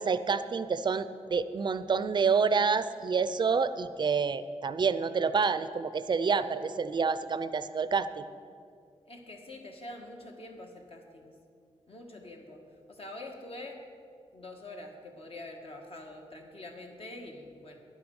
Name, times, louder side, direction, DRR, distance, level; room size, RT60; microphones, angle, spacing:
voice 1, 0.0-8.1, right 5 dB, 40° right, 13 dB, 0.5 m, -28 dB
voice 2, 9.0-11.3 11.9-12.6 12.9-13.8 14.3-17.8, left 2 dB, 55° left, 2 dB, 1.6 m, -45 dB
11.0 x 8.5 x 6.4 m, 2.3 s
wide cardioid pair, 105°, 12 cm